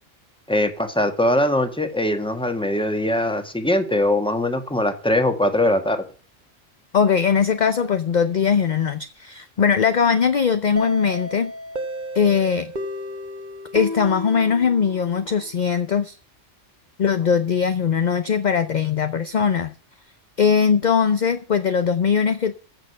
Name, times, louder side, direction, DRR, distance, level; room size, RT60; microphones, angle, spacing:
voice 1, 0.5-6.0, left 1 dB, 5° left, 1.5 m, -21 dB
voice 2, 6.9-11.5 12.1-12.7 13.7-16.2 17.0-19.7 20.4-22.5, left 6 dB, 45° left, 0.7 m, -20 dB
sound 1, 10.8-15.4, left 1 dB, 40° right, 1.4 m, -32 dB
14.5 x 6.5 x 6.7 m
omnidirectional pair, 1.3 m